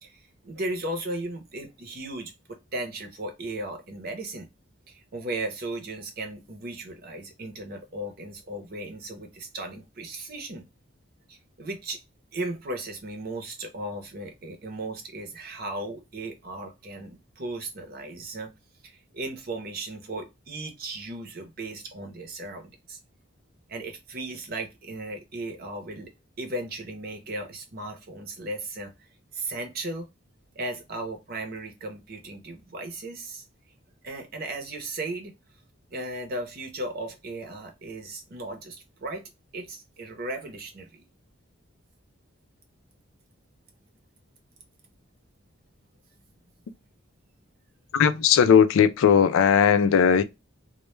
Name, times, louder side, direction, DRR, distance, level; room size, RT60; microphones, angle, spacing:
voice 1, 0.0-4.5 4.9-10.7 11.3-12.0 12.3-18.5 18.8-23.0 23.7-26.1 26.4-28.9 29.3-30.1 30.6-33.4 34.0-35.3 35.9-41.0, right 2 dB, 45° right, 0.7 m, -36 dB
voice 2, 47.9-50.2, left 7 dB, 75° left, 0.3 m, -18 dB
2.2 x 2.1 x 3.0 m
head